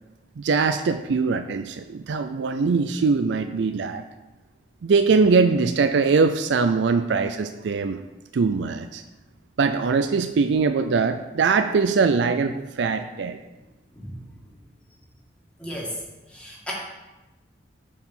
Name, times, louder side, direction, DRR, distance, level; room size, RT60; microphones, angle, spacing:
voice 1, 0.4-4.0 4.8-8.0 8.3-9.0 9.6-13.4, right 4 dB, 80° right, 8 dB, 0.4 m, -22 dB
voice 2, 15.6-16.0 16.3-16.7, equal, 5° left, -5 dB, 2.0 m, -34 dB
8.7 x 4.7 x 6.0 m, 1.1 s
head